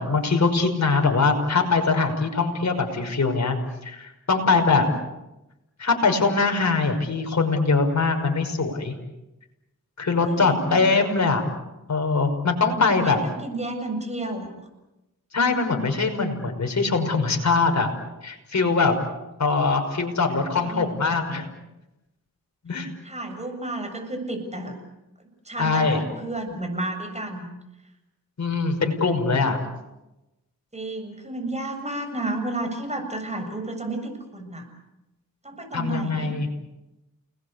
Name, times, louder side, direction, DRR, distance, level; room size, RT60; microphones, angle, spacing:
voice 1, 0.0-3.6 3.8-4.9 5.8-9.0 10.0-11.4 11.9-13.2 15.3-17.9 18.2-18.9 19.4-21.5 22.6-22.9 25.6-26.0 28.4-29.6 35.7-36.5, left 4 dB, 55° left, 4 dB, 5.8 m, -22 dB
voice 2, 10.2-10.8 12.9-14.6 20.6-21.1 23.0-24.7 25.2-27.5 30.7-34.7 35.4-36.4, right 2 dB, 20° right, 5 dB, 7.5 m, -32 dB
29.5 x 21.0 x 8.3 m, 0.98 s
cardioid pair, 60°, 34 cm